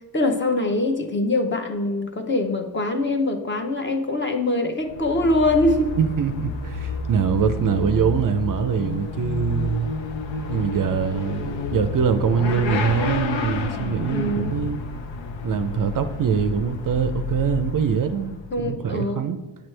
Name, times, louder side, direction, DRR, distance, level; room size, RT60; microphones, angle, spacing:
voice 1, 0.1-5.9 14.1-14.6 18.5-19.3, left 2 dB, 25° left, 5 dB, 0.7 m, -23 dB
Motorcycle / Accelerating revving vroom, 4.8-18.6, left 4 dB, 90° left, 0.8 m, -30 dB
voice 2, 6.0-9.9 10.5-14.8 15.4-19.4, right 7 dB, 50° right, 9 dB, 0.5 m, -23 dB
8.6 x 6.0 x 3.2 m, 1.2 s
wide cardioid pair, 140°, 44 cm